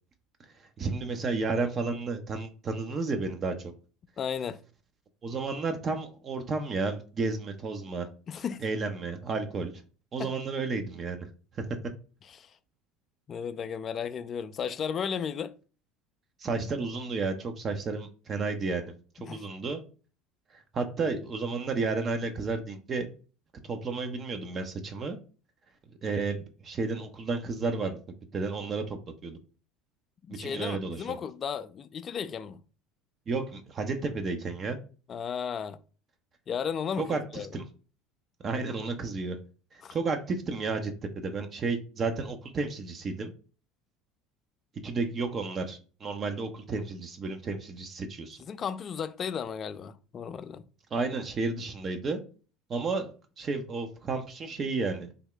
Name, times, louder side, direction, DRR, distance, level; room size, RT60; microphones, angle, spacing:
voice 1, 0.8-3.7 5.2-8.1 8.6-9.8 10.1-11.3 11.5-11.8 16.4-18.9 19.2-19.8 20.5-23.1 23.6-25.2 26.0-28.0 28.3-29.4 30.4-31.0 33.3-34.8 37.0-37.2 37.5-37.6 38.4-39.4 39.7-43.3 44.8-48.4 50.9-52.2 52.7-55.1, right 4 dB, 35° right, 0.6 m, -32 dB
voice 2, 4.2-4.6 8.3-8.6 10.2-10.3 12.3-12.5 13.3-15.5 19.3-19.4 30.2-32.6 35.1-35.8 36.5-37.5 39.8-40.0 48.4-50.6, left 7 dB, 40° left, 0.3 m, -34 dB
3.5 x 2.2 x 3.7 m
supercardioid pair, 95°, 0 cm